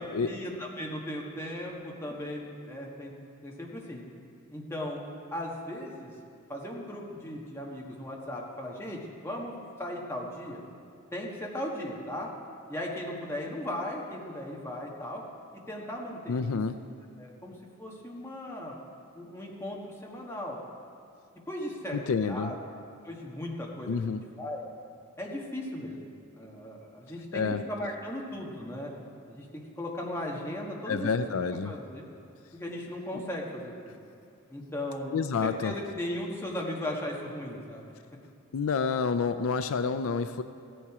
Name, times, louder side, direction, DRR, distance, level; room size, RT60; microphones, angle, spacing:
voice 1, 0.2-3.1 3.4-4.0 4.5-5.0 5.3-6.1 6.5-10.6 11.1-12.3 12.7-15.2 15.7-16.6 17.2-18.8 19.1-20.6 21.5-22.5 23.0-24.6 25.2-26.0 26.4-27.4 27.7-28.9 29.3-32.0 32.5-34.0 34.5-35.1 35.4-37.9, left 1 dB, 10° left, -2 dB, 1.4 m, -37 dB
voice 2, 16.3-16.8 21.9-22.5 23.9-24.2 27.3-27.6 30.9-31.7 35.1-35.7 38.5-40.4, left 5 dB, 75° left, 10 dB, 0.4 m, -28 dB
15.0 x 10.0 x 4.9 m, 2.5 s
head